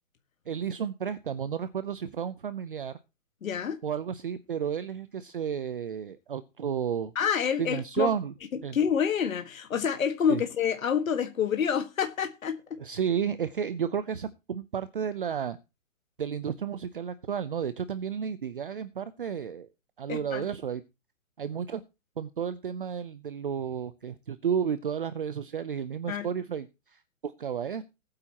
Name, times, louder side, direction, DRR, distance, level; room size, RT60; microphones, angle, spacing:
voice 1, 0.5-2.9 3.8-7.1 7.6-8.3 8.6-8.8 10.3-10.4 12.8-15.6 16.2-19.7 20.0-20.8 21.4-21.8 22.2-27.8, right 7 dB, 40° right, 0.6 m, -32 dB
voice 2, 3.4-3.8 7.2-8.1 8.5-12.8 20.1-20.5 26.1-26.3, left 7 dB, 85° left, 1.8 m, -28 dB
19.0 x 8.8 x 2.9 m
hypercardioid pair, 180°, 40 cm